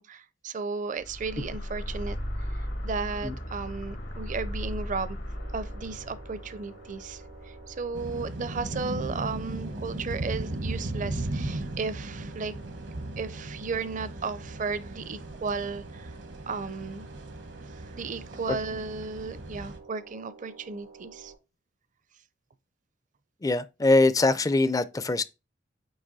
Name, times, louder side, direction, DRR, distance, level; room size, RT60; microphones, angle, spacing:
voice 1, 0.0-2.2 2.8-5.2 5.5-12.5 13.2-16.1 16.5-17.1 17.7-21.3, right 4 dB, 45° right, 0.5 m, -34 dB
sound 1, 0.9-9.3, equal, 85° left, 2.2 m, -37 dB
sound 2, 5.3-21.4, right 4 dB, 85° right, 2.1 m, -51 dB
sound 3, 7.9-19.8, right 1 dB, 70° right, 0.9 m, -37 dB
voice 2, 23.4-25.2, left 2 dB, 20° left, 0.4 m, -22 dB
8.8 x 2.9 x 4.0 m
head